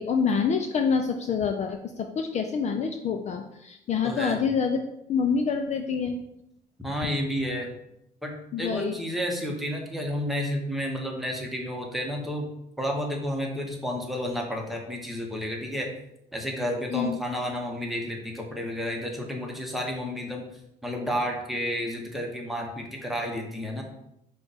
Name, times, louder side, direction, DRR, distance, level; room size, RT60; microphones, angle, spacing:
voice 1, 0.0-4.8 5.1-6.2 8.5-8.9 16.9-17.2, left 6 dB, 45° left, 5 dB, 0.4 m, -26 dB
voice 2, 4.0-4.4 6.8-7.7 8.2-8.3 8.6-12.5 12.8-15.9 16.3-20.5 20.8-23.8, equal, ahead, 0 dB, 0.9 m, -31 dB
5.1 x 2.3 x 4.0 m, 0.80 s
cardioid pair, 110°, 17 cm